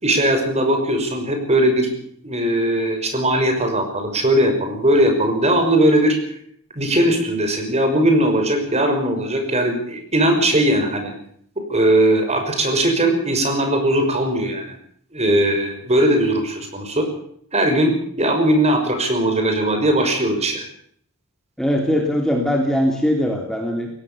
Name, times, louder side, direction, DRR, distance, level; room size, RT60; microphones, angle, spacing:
voice 1, 0.0-1.9 2.2-6.2 6.7-11.1 11.7-14.7 15.1-17.1 17.5-17.9 18.2-20.7, right 1 dB, 30° right, 5 dB, 6.0 m, -19 dB
voice 2, 21.6-23.9, equal, ahead, 2 dB, 2.9 m, -20 dB
22.0 x 17.5 x 7.1 m, 0.64 s
head